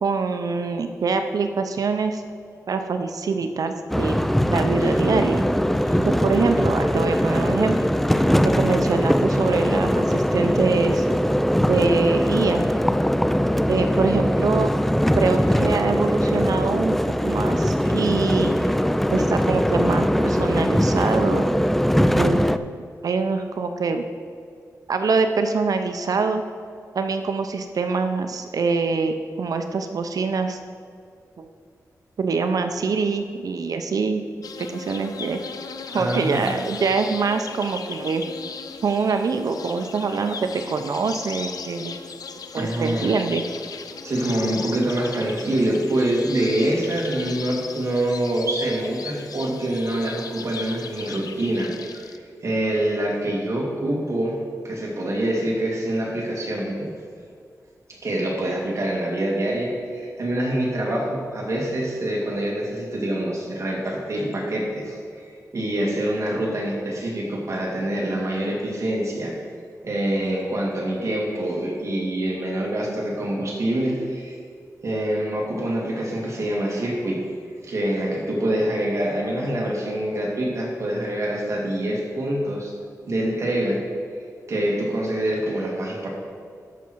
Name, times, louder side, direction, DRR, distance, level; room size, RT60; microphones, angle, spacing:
voice 1, 0.0-2.2 2.7-5.4 5.9-7.9 8.4-11.1 11.7-12.6 13.7-14.7 15.2-17.0 17.2-18.6 19.1-21.5 22.1-24.1 24.9-26.4 26.9-30.6 31.4-31.5 32.2-35.4 35.9-38.2 38.8-42.0 42.5-43.4, right 4 dB, 75° right, 7 dB, 0.6 m, -24 dB
sound 1, 3.9-22.6, equal, 5° left, 0.3 m, -21 dB
sound 2, 34.4-52.2, left 5 dB, 80° left, 0.5 m, -37 dB
voice 2, 35.9-36.6 42.5-43.1 44.0-52.1 52.4-54.4 54.6-56.9 57.9-65.2 65.5-69.3 69.8-74.4 74.8-77.2 77.6-82.7 83.1-83.8 84.5-86.1, right 1 dB, 50° right, -2 dB, 2.4 m, -25 dB
13.0 x 6.1 x 4.6 m, 2.3 s
wide cardioid pair, 115°, 6 cm